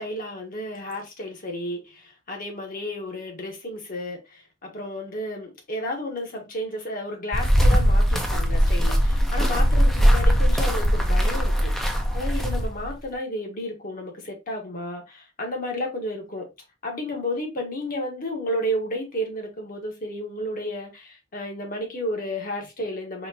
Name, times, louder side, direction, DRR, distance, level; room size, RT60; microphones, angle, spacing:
voice 1, 0.0-11.7 12.1-16.5 16.8-23.3, left 1 dB, 45° left, 1.3 m, -32 dB
sound 1, 7.3-12.9, equal, ahead, 0.6 m, -20 dB
4.3 x 3.0 x 2.7 m
head